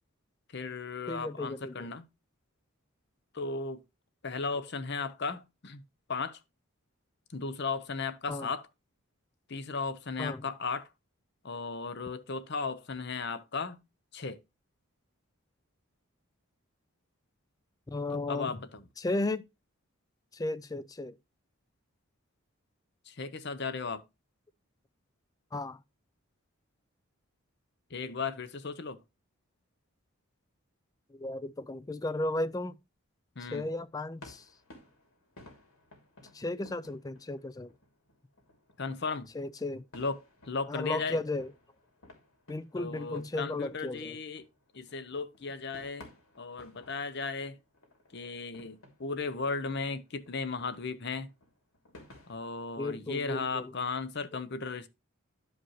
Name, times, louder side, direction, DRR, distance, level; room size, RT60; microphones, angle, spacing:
voice 1, 0.5-2.0 3.3-3.8 4.2-5.8 6.1-6.4 7.3-8.7 9.5-10.9 11.4-13.8 14.1-14.4 18.1-18.8 23.1-24.0 27.9-29.0 33.4-33.7 38.8-39.3 39.9-41.2 42.8-44.5 44.7-46.1 46.4-47.6 48.1-51.3 52.3-54.9, left 4 dB, 50° left, 0.7 m, -36 dB
voice 2, 1.1-1.9 8.3-8.5 10.2-10.4 17.9-18.5 19.0-19.4 20.3-21.1 25.5-25.8 31.1-32.8 33.4-34.5 36.3-37.7 39.3-39.8 40.7-41.5 42.5-44.2 52.8-53.7 54.3-54.4, left 2 dB, 15° left, 0.3 m, -35 dB
sound 1, 33.6-52.4, left 1 dB, 80° left, 2.9 m, -57 dB
11.5 x 5.1 x 3.1 m
head